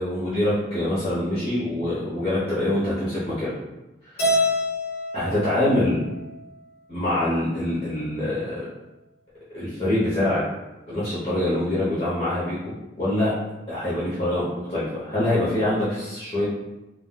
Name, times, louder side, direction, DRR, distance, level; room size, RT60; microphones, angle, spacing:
voice 1, 0.0-3.5 5.1-6.0 6.9-8.7 9.5-10.4 10.9-12.6 13.0-13.3 13.7-16.5, left 1 dB, 30° left, -11 dB, 0.7 m, -24 dB
Keyboard (musical), 4.2-6.5, left 1 dB, 65° left, 1.0 m, -26 dB
3.6 x 2.2 x 2.2 m, 1.0 s
head